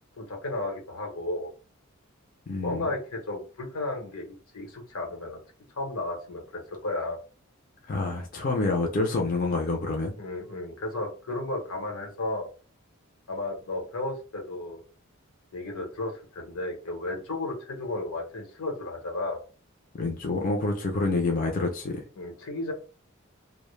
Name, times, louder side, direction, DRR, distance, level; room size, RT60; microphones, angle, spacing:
voice 1, 0.2-1.5 2.6-5.4 5.7-7.2 10.1-12.5 13.3-14.8 15.5-19.4 21.2-21.4 22.2-22.7, left 2 dB, 85° left, 0.9 m, -33 dB
voice 2, 2.5-2.8 7.9-10.2 20.0-22.0, left 3 dB, 40° left, 0.4 m, -27 dB
2.0 x 2.0 x 3.0 m
head